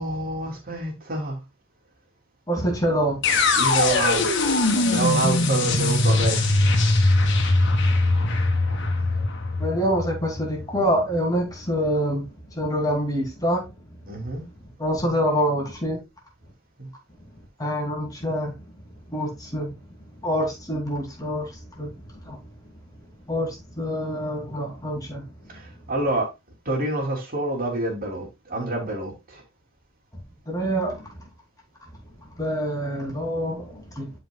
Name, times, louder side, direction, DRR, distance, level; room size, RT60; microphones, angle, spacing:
voice 1, 0.0-1.4 3.5-4.4 4.8-6.6 14.1-14.4 16.8-16.9 25.5-25.6 25.9-26.3 26.6-29.4, right 2 dB, 45° right, 3.1 m, -27 dB
voice 2, 2.5-3.2 9.6-12.3 12.6-13.6 14.8-16.0 17.6-18.5 19.1-19.7 20.2-21.5 21.8-22.4 23.3-25.3 30.5-31.1 32.4-34.1, equal, 15° left, 2.9 m, -26 dB
sound 1, 3.2-11.2, left 2 dB, 60° left, 1.7 m, -21 dB
12.0 x 5.2 x 2.3 m
head